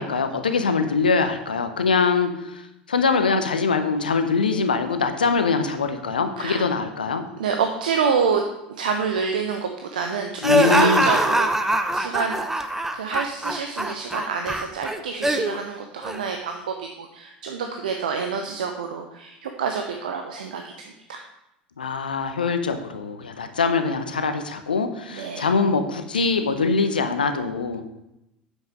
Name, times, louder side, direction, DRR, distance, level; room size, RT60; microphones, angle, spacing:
voice 1, 0.0-2.6 2.9-7.2 10.4-11.1 21.8-27.8, left 4 dB, 75° left, 8 dB, 0.9 m, -23 dB
voice 2, 7.4-11.5 11.9-12.4 12.9-21.2 25.1-25.5, right 6 dB, 70° right, 4 dB, 0.9 m, -27 dB
sound 1, 10.4-15.6 16.0-16.2, right 1 dB, 5° right, 0.9 m, -23 dB
9.3 x 7.6 x 5.2 m, 0.88 s
figure-of-eight pair, 70°, 5 cm